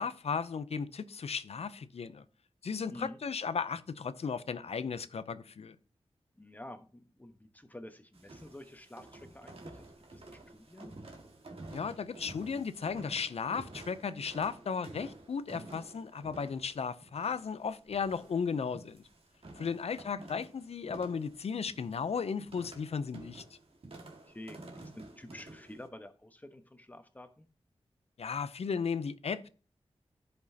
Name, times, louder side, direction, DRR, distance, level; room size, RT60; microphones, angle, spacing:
voice 1, 0.0-2.2 2.6-5.8 11.7-19.0 19.5-23.4 28.2-29.5, left 6 dB, 70° left, 0.6 m, -35 dB
voice 2, 6.4-10.9 19.6-19.9 24.3-27.5, left 1 dB, 15° left, 1.1 m, -49 dB
sound 1, 8.1-25.9, right 2 dB, 60° right, 1.8 m, -51 dB
14.5 x 5.3 x 2.8 m
wide cardioid pair, 95°, 11 cm